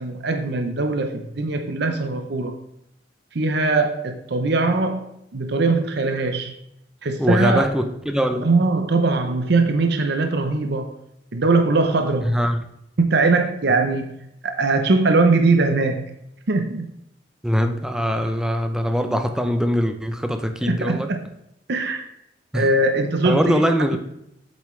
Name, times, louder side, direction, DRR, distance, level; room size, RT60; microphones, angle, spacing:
voice 1, 0.0-2.6 3.3-6.5 7.0-7.6 8.4-10.9 11.3-12.4 13.0-14.2 14.4-16.1 16.5-16.9 20.6-21.2 21.7-22.0 22.5-23.7, right 3 dB, 60° right, 6 dB, 0.7 m, -21 dB
voice 2, 7.2-8.5 12.2-12.6 17.4-21.1 22.5-22.7 23.2-24.0, equal, 5° right, 6 dB, 0.5 m, -22 dB
8.3 x 7.1 x 3.2 m, 0.79 s
head